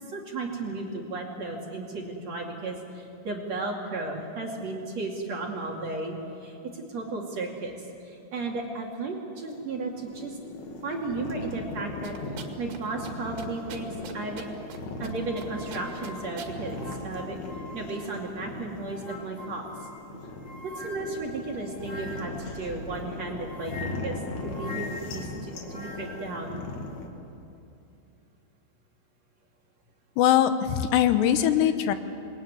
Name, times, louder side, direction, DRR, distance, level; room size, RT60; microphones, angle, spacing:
voice 1, 0.1-10.4 10.8-12.1 12.6-14.5 15.0-17.4 17.7-19.9 20.6-26.6, right 3 dB, 45° right, -1 dB, 3.3 m, -34 dB
sound 1, 9.4-27.1, left 2 dB, 50° left, 3.0 m, -38 dB
sound 2, 12.0-12.8 13.0-13.1 13.4-14.8 15.0-15.4 15.7-16.5, right 7 dB, 75° right, 4.2 m, -42 dB
sound 3, 15.1-18.3 18.8-22.5 23.3-26.3, left 2 dB, 25° left, 0.8 m, -44 dB
voice 2, 30.2-31.9, left 10 dB, 80° left, 9 dB, 3.1 m, -21 dB
28.0 x 21.0 x 9.7 m, 2.7 s
omnidirectional pair, 5.0 m